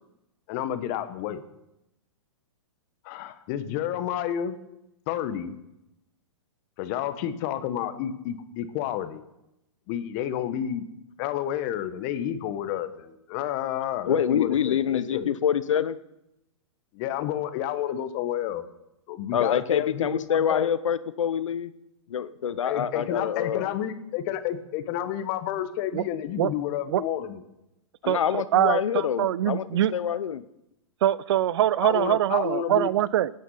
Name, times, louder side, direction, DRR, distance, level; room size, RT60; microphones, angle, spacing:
voice 1, 0.5-1.4 3.0-4.6 5.1-5.6 6.8-9.2 9.9-10.9 11.2-15.3 16.9-18.6 19.1-20.7 22.6-27.4 31.8-32.9, left 10 dB, 35° left, 1.2 m, -30 dB
voice 2, 14.1-16.0 19.3-21.7 22.1-23.7 28.0-30.4, left 8 dB, 80° left, 0.8 m, -26 dB
voice 3, 28.1-29.9 31.0-33.3, right 12 dB, 55° right, 0.5 m, -23 dB
19.0 x 9.5 x 5.6 m
hypercardioid pair, 145°, 16 cm